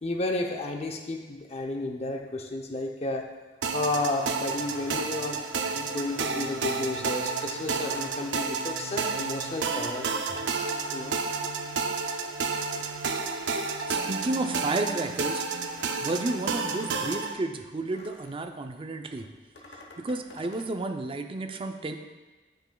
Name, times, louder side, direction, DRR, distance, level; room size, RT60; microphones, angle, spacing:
voice 1, 0.0-3.3 3.6-5.4 5.7-11.2, left 2 dB, 35° left, 3 dB, 0.7 m, -32 dB
sound 1, 3.6-17.3, right 4 dB, 80° right, 0.5 m, -31 dB
sound 2, 4.6-8.9 9.4-10.9 11.1-18.5 19.1-20.8, left 2 dB, 75° left, 1.0 m, -50 dB
voice 2, 13.9-15.4 16.0-19.3 19.7-22.0, right 2 dB, 30° right, 6 dB, 0.5 m, -32 dB
10.0 x 5.9 x 2.3 m, 1.3 s
head